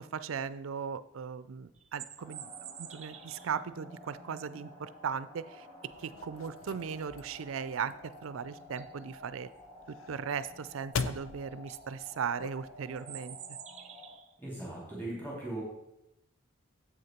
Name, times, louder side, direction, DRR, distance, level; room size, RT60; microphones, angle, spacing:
voice 1, 0.0-2.5 2.8-5.7 6.0-9.5 9.9-13.4, right 6 dB, 85° right, 15 dB, 0.4 m, -38 dB
sound 1, 1.7-3.6 8.1-8.2 8.6-9.0 11.1-11.2 11.5-11.8 13.0-14.3, right 10 dB, 35° right, 0.5 m, -47 dB
sound 2, 2.2-14.2, left 1 dB, 25° left, 2.0 m, -52 dB
sound 3, 5.9-13.0, left 5 dB, 90° left, 0.5 m, -43 dB
voice 2, 14.4-15.6, right 1 dB, 10° left, -6 dB, 2.6 m, -39 dB
7.8 x 6.5 x 4.4 m, 0.88 s
head